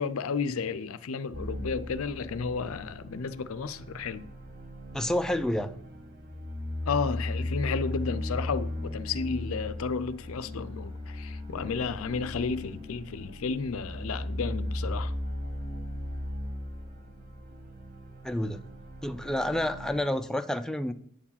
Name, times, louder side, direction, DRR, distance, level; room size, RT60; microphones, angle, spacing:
voice 1, 0.0-4.3 6.9-15.1, left 5 dB, 70° left, 0.5 m, -32 dB
sound 1, 1.3-20.0, left 1 dB, 45° right, 1.8 m, -37 dB
voice 2, 4.9-5.7 18.2-18.7 19.0-20.9, left 1 dB, 5° left, 0.3 m, -29 dB
9.0 x 4.7 x 7.3 m
head